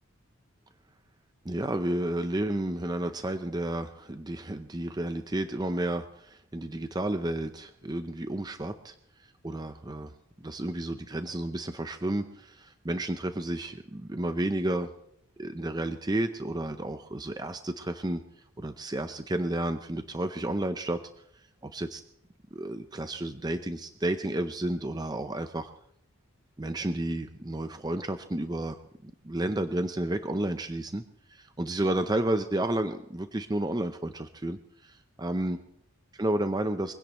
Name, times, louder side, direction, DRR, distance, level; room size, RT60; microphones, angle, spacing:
voice 1, 1.4-8.9 9.4-10.1 10.4-14.9 15.4-18.2 18.6-21.0 21.4-22.0 22.5-25.7 26.6-31.0 31.3-35.6 36.2-36.9, right 1 dB, 20° right, 8 dB, 0.6 m, -31 dB
23.5 x 16.5 x 3.1 m, 0.75 s
head